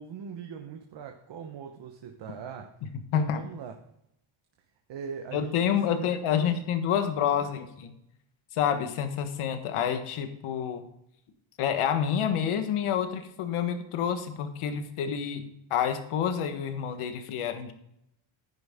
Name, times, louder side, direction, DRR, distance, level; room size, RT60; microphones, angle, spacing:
voice 1, 0.0-2.7 3.1-3.8 4.9-6.6 7.3-7.5, right 7 dB, 60° right, 4 dB, 1.1 m, -41 dB
voice 2, 5.3-7.9 8.5-10.8 11.6-15.4 15.7-17.7, left 8 dB, 80° left, 8 dB, 1.4 m, -28 dB
10.5 x 10.0 x 3.6 m, 0.77 s
cardioid pair, 135°, 49 cm